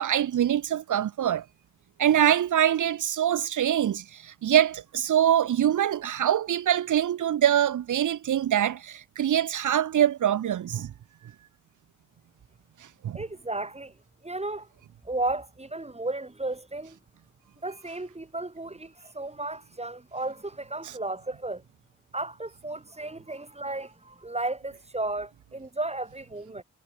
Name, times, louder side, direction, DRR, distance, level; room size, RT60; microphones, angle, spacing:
voice 1, 0.0-1.4 2.0-10.9 12.8-13.2 20.8-20.9, right 10 dB, 75° right, 0.9 m, -24 dB
voice 2, 13.1-13.9 14.2-14.7 15.0-17.0 17.6-21.6 22.1-26.6, right 2 dB, 20° right, 3.3 m, -34 dB
cardioid pair, 50°, 31 cm